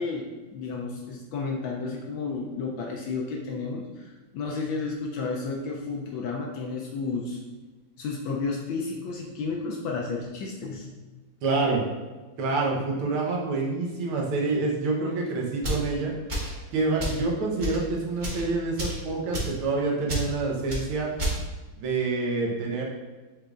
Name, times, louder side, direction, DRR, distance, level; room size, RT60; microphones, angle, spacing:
voice 1, 0.0-7.4 8.0-11.0, left 4 dB, 75° left, -1 dB, 1.3 m, -32 dB
voice 2, 11.4-11.8 12.4-16.1 16.7-21.1 21.8-22.8, right 3 dB, 85° right, -2 dB, 1.7 m, -27 dB
sound 1, 15.6-15.9 16.3-16.6 17.0-17.2 17.6-17.8 18.2-18.4 18.8-19.0 19.3-19.6 20.1-20.3 20.7-20.8 21.2-21.4, right 1 dB, 35° right, 0.8 m, -29 dB
6.5 x 3.2 x 2.4 m, 1.3 s
omnidirectional pair, 2.3 m